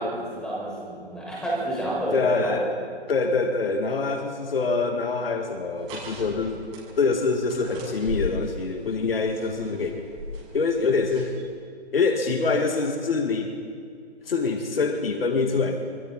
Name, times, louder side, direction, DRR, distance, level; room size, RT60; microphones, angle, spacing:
voice 1, 0.0-2.6, right 1 dB, ahead, -6 dB, 6.4 m, -29 dB
voice 2, 2.1-2.7 3.1-6.6 7.0-10.0 10.5-11.3 11.9-13.5 14.3-15.8, left 4 dB, 60° left, 5 dB, 2.2 m, -25 dB
sound 1, 5.8-11.5, left 1 dB, 20° right, 7.2 m, -38 dB
30.0 x 22.5 x 4.3 m, 2.3 s
figure-of-eight pair, 140°, 33 cm